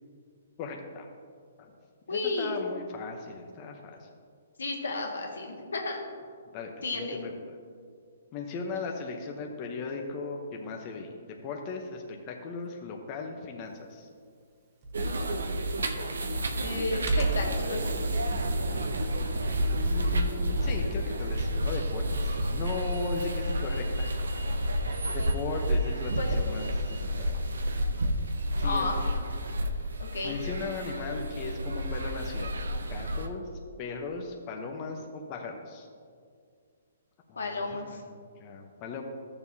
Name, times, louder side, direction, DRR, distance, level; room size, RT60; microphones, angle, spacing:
voice 1, 0.6-1.1 1.6-1.7 2.1-4.1 6.5-7.3 8.3-14.1 19.8-24.1 25.1-27.4 28.6-29.1 30.2-33.4 33.8-35.9 37.3-39.0, left 4 dB, 30° left, 2 dB, 0.9 m, -38 dB
voice 2, 2.1-2.5 4.6-6.0 6.8-7.3 16.6-17.9 26.2-26.4 28.6-29.0 30.0-30.4 37.3-38.0, left 3 dB, 90° left, 0 dB, 1.6 m, -32 dB
Computer keyboard, 14.8-21.7, right 2 dB, 30° right, 1.4 m, -35 dB
sound 1, 14.9-33.3, equal, 90° right, 0.7 m, -30 dB
13.5 x 6.9 x 2.8 m, 2.1 s
hypercardioid pair, 145°, 0 cm